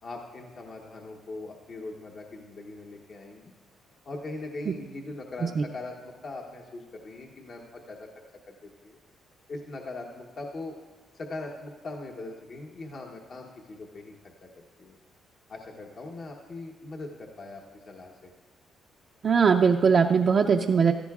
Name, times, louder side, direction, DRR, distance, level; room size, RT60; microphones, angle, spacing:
voice 1, 0.0-3.5 4.0-8.1 8.5-9.0 9.5-10.8 11.1-14.1 14.4-15.0 15.5-18.3, left 2 dB, 50° left, 0 dB, 1.0 m, -41 dB
voice 2, 19.2-20.9, right 6 dB, 50° right, 2 dB, 0.5 m, -20 dB
15.0 x 13.5 x 2.4 m, 1.4 s
cardioid pair, 90°, 0 cm